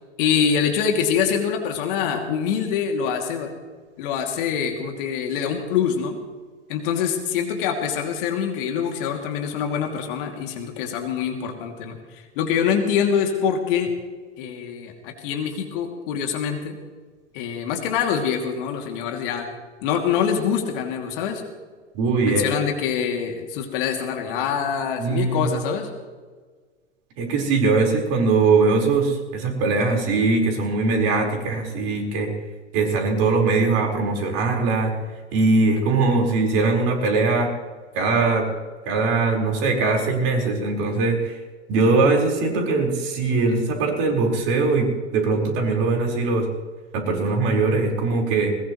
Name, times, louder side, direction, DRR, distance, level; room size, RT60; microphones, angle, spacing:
voice 1, 0.2-3.5 4.0-6.2 6.7-13.9 14.4-16.8 17.3-19.5 19.8-21.4 22.2-25.9, left 7 dB, 50° left, 3 dB, 2.8 m, -25 dB
voice 2, 21.9-22.5 25.0-25.5 27.2-32.3 32.7-34.9 35.3-37.5 37.9-38.5 38.8-41.4 41.7-46.5 46.9-48.5, right 3 dB, 45° right, 1 dB, 4.8 m, -21 dB
21.5 x 20.5 x 3.2 m, 1.4 s
figure-of-eight pair, 95°, 35 cm